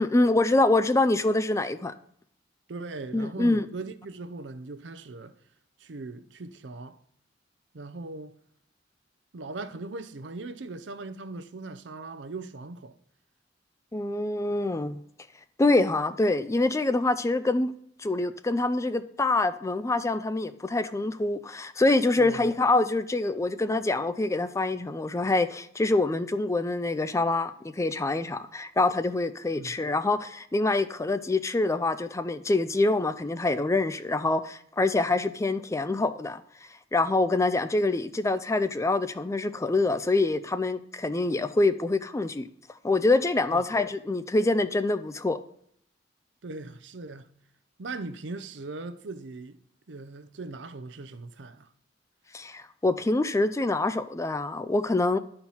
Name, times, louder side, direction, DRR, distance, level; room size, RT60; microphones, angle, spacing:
voice 1, 0.0-1.9 3.1-3.7 13.9-15.0 15.6-17.7 18.0-36.4 36.9-42.5 42.8-45.4 52.3-55.2, left 2 dB, 15° left, 0.4 m, -25 dB
voice 2, 2.7-5.4 5.8-7.0 7.7-8.4 9.3-12.9 22.2-22.5 29.6-29.7 43.5-43.7 46.4-47.3 47.8-49.6 49.9-51.7, right 3 dB, 80° right, 0.6 m, -39 dB
11.0 x 4.4 x 5.5 m
head